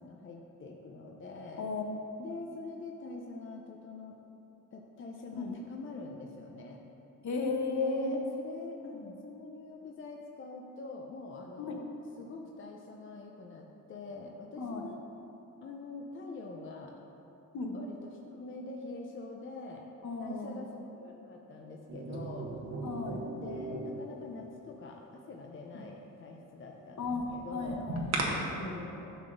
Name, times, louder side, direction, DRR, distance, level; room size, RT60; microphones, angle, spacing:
voice 1, 0.0-1.7 2.2-4.2 4.7-6.8 7.7-11.8 12.2-15.0 15.6-16.9 17.7-19.9 20.2-22.6 23.4-27.9 28.4-29.2, left 3 dB, 40° left, 1 dB, 0.6 m, -45 dB
voice 2, 7.2-8.2 8.9-9.1 11.6-11.8 14.6-14.8 17.5-17.8 20.0-20.6 22.8-23.2 25.7-25.8 27.0-28.9, left 3 dB, 60° left, 2 dB, 1.0 m, -35 dB
sound 1, 21.9-24.3 27.1-28.3, right 2 dB, 55° right, 1.0 m, -37 dB
11.0 x 6.0 x 2.6 m, 2.9 s
cardioid pair, 95°, 33 cm